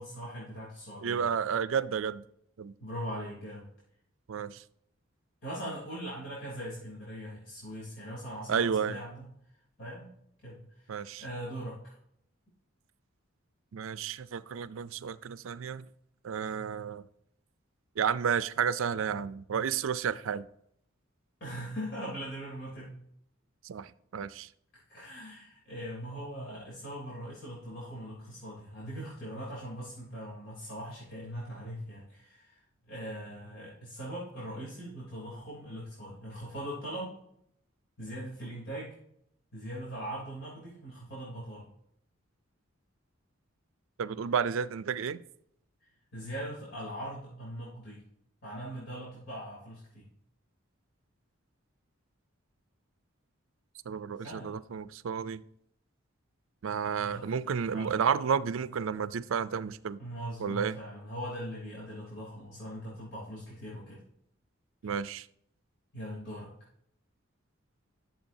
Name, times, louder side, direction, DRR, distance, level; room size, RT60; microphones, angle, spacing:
voice 1, 0.0-1.3 2.8-3.6 5.4-9.3 9.8-10.1 10.4-11.9 21.4-22.9 24.9-32.6 32.9-37.1 38.0-38.9 39.5-41.7 46.1-48.0 48.4-50.0 54.2-54.6 57.0-57.2 57.7-57.9 60.0-64.0 65.9-66.5, equal, 60° left, 3.3 m, -41 dB
voice 2, 1.0-2.2 2.6-2.7 4.3-4.6 8.5-9.0 10.9-11.2 13.7-15.8 16.2-17.1 18.0-20.5 23.6-24.5 44.0-45.2 53.9-55.4 56.6-60.0 60.4-60.8 64.8-65.3, right 7 dB, 70° right, 0.4 m, -31 dB
12.0 x 7.1 x 2.7 m
head